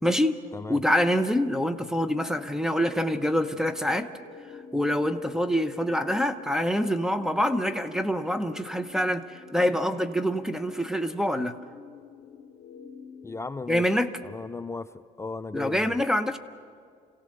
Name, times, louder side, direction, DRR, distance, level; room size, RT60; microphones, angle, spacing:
voice 1, 0.0-0.4 0.7-4.1 4.7-11.5 13.7-14.1 15.5-16.4, equal, 5° right, 10 dB, 0.8 m, -25 dB
sound 1, 2.0-13.9, left 6 dB, 60° left, 1.3 m, -48 dB
voice 2, 13.2-13.9 14.2-16.0, left 3 dB, 15° left, 13 dB, 0.4 m, -36 dB
26.5 x 17.0 x 6.6 m, 2.2 s
cardioid pair, 110°, 17 cm